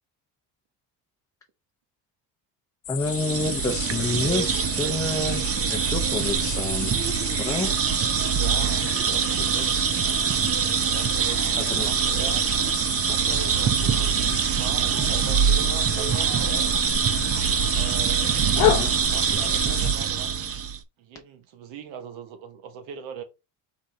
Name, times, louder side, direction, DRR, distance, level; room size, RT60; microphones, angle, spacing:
sound 1, 2.8-19.9, left 12 dB, 70° left, 0.8 m, -32 dB
voice 1, 2.9-5.4 5.7-6.9 7.4-7.7 11.6-11.9 18.6-18.9, left 2 dB, 5° left, 0.6 m, -28 dB
sound 2, 3.0-20.8, right 7 dB, 30° right, 0.6 m, -24 dB
voice 2, 8.2-9.7 10.9-12.5 13.1-16.8 17.7-20.4 21.0-23.2, right 7 dB, 75° right, 1.3 m, -40 dB
4.1 x 3.8 x 3.3 m
cardioid pair, 100°, 46 cm